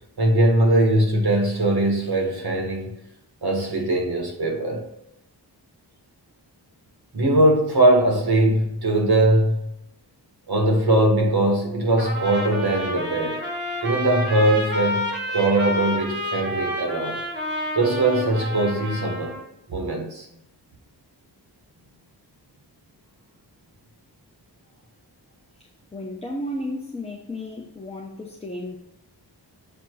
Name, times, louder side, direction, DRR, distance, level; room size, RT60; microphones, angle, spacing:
voice 1, 0.2-3.0 3.4-4.8 7.1-9.7 10.5-13.4 13.8-17.2 17.7-19.4 19.7-20.3, right 1 dB, 60° right, 0 dB, 1.7 m, -21 dB
Trumpet, 12.0-19.4, left 1 dB, 25° right, 1.6 m, -29 dB
voice 2, 25.6-28.8, left 1 dB, 15° left, -1 dB, 0.8 m, -33 dB
7.2 x 2.9 x 4.6 m, 0.80 s
wide cardioid pair, 85°, 42 cm